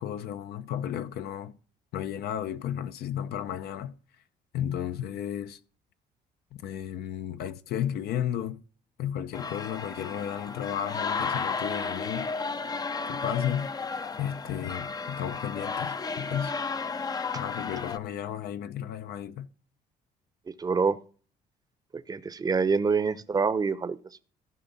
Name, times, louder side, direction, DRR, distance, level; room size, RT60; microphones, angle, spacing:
voice 1, 0.0-1.6 1.9-3.9 4.5-5.6 6.5-8.6 9.0-12.3 13.1-13.7 14.2-16.5 17.3-19.5, left 10 dB, 70° left, 0.7 m, -33 dB
sound 1, 9.3-18.0, left 4 dB, 25° left, 0.5 m, -33 dB
voice 2, 20.6-21.0 22.1-24.2, right 5 dB, 20° right, 0.7 m, -26 dB
14.0 x 5.5 x 4.1 m
cardioid pair, 110°, 17 cm